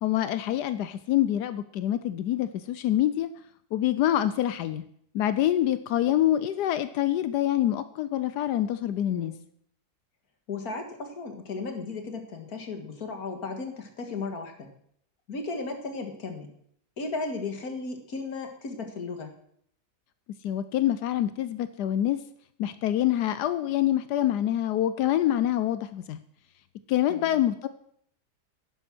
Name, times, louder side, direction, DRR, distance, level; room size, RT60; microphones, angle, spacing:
voice 1, 0.0-3.3 3.7-4.8 5.1-9.3 20.4-22.2 22.6-26.2 26.9-27.7, left 12 dB, 80° left, 13 dB, 1.2 m, -26 dB
voice 2, 9.1-9.4 10.5-14.7 15.3-16.5 17.0-19.3 27.1-27.4, left 3 dB, 65° left, 5 dB, 2.2 m, -35 dB
11.0 x 9.9 x 6.1 m, 0.67 s
omnidirectional pair, 1.7 m